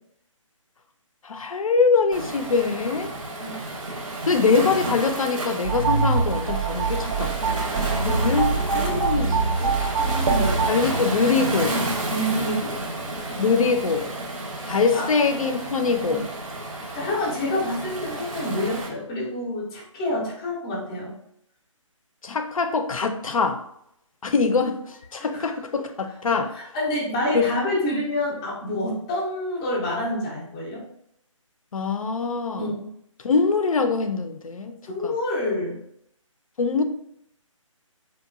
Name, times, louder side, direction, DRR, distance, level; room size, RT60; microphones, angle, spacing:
voice 1, 1.2-3.1 4.3-7.3 8.0-9.4 9.6-9.7 10.7-11.8 13.4-14.1 14.6-16.2 22.2-23.6 24.2-24.8 25.1-26.5 27.3-27.5 31.7-32.7 33.2-34.7 35.0-35.1 36.6-36.8, left 4 dB, 90° left, 7 dB, 0.4 m, -23 dB
Waves surf, 2.1-18.9, right 1 dB, 80° right, 0.8 m, -31 dB
sound 1, 5.6-10.7, right 4 dB, 45° right, 0.5 m, -24 dB
voice 2, 8.5-10.7 12.1-12.9 14.6-15.1 16.0-16.2 16.9-21.2 25.3-25.5 26.5-30.8 32.5-32.9 34.8-35.8, left 1 dB, 10° left, -6 dB, 0.4 m, -28 dB
2.9 x 2.2 x 2.3 m, 0.72 s
figure-of-eight pair, 155°, 17 cm